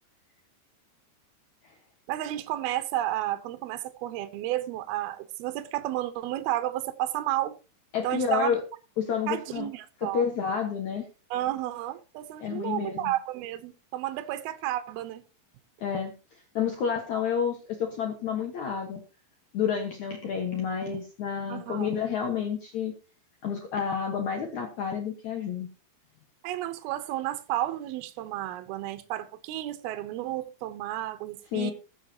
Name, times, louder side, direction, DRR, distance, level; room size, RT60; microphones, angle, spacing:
voice 1, 2.1-7.5 8.0-8.6 9.3-10.2 11.3-15.2 21.5-21.9 26.4-31.7, right 14 dB, 75° right, 2.6 m, -32 dB
voice 2, 7.9-8.6 9.0-9.7 10.1-11.1 12.4-13.1 15.8-16.1 16.5-19.0 19.5-22.9 23.4-25.7 31.5-31.7, left 7 dB, 65° left, 1.9 m, -29 dB
20.5 x 7.4 x 2.8 m
omnidirectional pair, 5.1 m